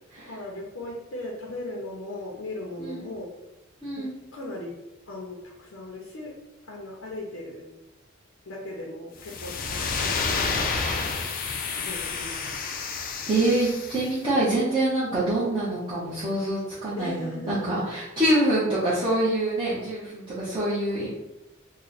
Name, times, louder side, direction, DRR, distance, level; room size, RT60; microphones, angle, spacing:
voice 1, 0.2-3.3 4.0-4.8 5.1-6.3 6.7-7.7 8.5-11.1 11.7-12.6 17.0-17.7, left 1 dB, 85° left, -2 dB, 0.7 m, -38 dB
voice 2, 2.8-3.1 3.8-4.1 13.3-21.1, right 1 dB, 25° right, -11 dB, 0.9 m, -25 dB
sound 1, 9.2-14.1, left 4 dB, 45° left, 0.4 m, -30 dB
3.1 x 2.1 x 3.9 m, 0.93 s
head